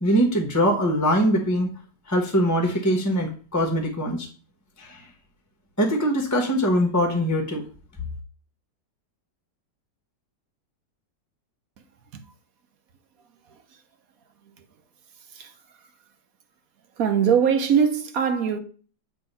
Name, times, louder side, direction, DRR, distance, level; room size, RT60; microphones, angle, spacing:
voice 1, 0.0-1.7 2.1-4.3 4.8-5.1 5.8-7.6, equal, 15° left, 0.8 m, -22 dB
voice 2, 17.0-18.6, right 7 dB, 60° right, 1.1 m, -22 dB
7.9 x 3.0 x 5.4 m
omnidirectional pair, 1.9 m